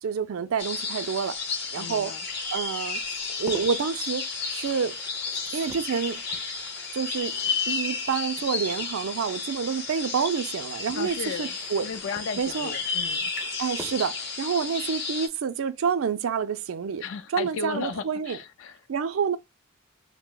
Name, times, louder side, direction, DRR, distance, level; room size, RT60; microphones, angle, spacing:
voice 1, 0.0-1.4 1.7-2.1 2.5-3.0 3.4-5.0 5.5-6.2 6.9-7.4 7.7-11.9 12.4-12.7 13.6-17.0 17.3-18.4 18.9-19.4, right 6 dB, 80° right, 0.4 m, -28 dB
sound 1, 0.6-15.3, left 4 dB, 50° left, 0.8 m, -32 dB
sound 2, 0.7-9.4 10.5-14.5 16.1-16.4 16.7-16.8, equal, 10° right, 0.4 m, -49 dB
voice 2, 1.7-2.2 10.9-13.3 17.0-18.8, left 5 dB, 70° left, 0.4 m, -35 dB
2.8 x 2.1 x 3.6 m
head